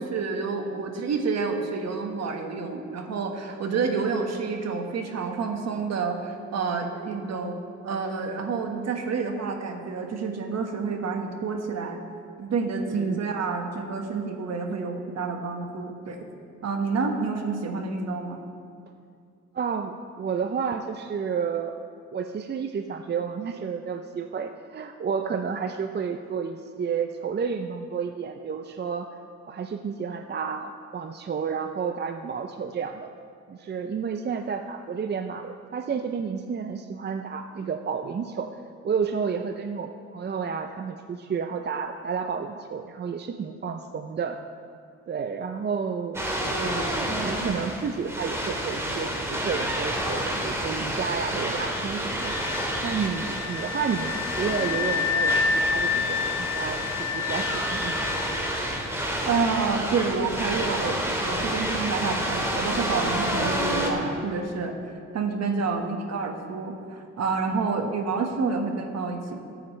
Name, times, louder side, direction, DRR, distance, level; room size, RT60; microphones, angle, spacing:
voice 1, 0.0-7.5 7.8-12.0 12.4-16.3 16.6-18.4 59.3-64.7 65.1-69.4, right 4 dB, 60° right, 3 dB, 1.6 m, -29 dB
voice 2, 19.5-21.8 22.1-29.2 29.5-33.1 33.5-38.5 38.8-44.4 45.1-46.2 46.5-46.9 47.2-52.3 52.8-58.1 65.6-65.7 67.5-67.7, right 6 dB, 35° right, 6 dB, 0.6 m, -31 dB
sound 1, 46.1-63.9, equal, 10° right, 2.1 m, -29 dB
sound 2, 52.1-58.9, left 5 dB, 45° left, 1.0 m, -29 dB
19.5 x 8.8 x 3.3 m, 2.3 s
cardioid pair, 90°, 30 cm